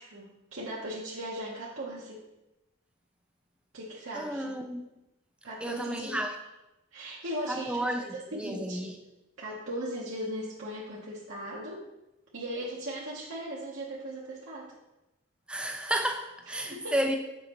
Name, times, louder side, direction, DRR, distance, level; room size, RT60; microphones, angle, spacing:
voice 1, 0.0-2.2 3.7-4.6 5.4-6.2 6.9-8.0 8.3-8.9 9.4-11.8 12.3-14.7 16.5-16.9, right 1 dB, 65° right, 1.0 m, -38 dB
voice 2, 4.1-4.9 5.6-6.4 7.5-8.9 15.5-17.2, right 1 dB, 5° right, 0.4 m, -32 dB
7.3 x 5.4 x 3.0 m
head